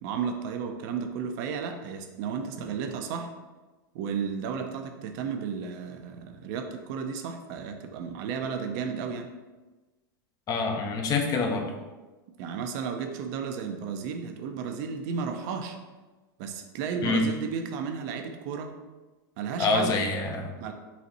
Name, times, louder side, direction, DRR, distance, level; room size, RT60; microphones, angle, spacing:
voice 1, 0.0-3.3 3.9-9.3 12.4-15.8 16.4-18.7 19.4-19.9 20.6-20.7, right 6 dB, 60° right, 5 dB, 0.6 m, -33 dB
voice 2, 10.5-11.7 17.0-17.2 19.6-20.5, left 3 dB, 30° left, 4 dB, 0.7 m, -26 dB
4.1 x 2.5 x 4.1 m, 1.2 s
hypercardioid pair, 110°, 11 cm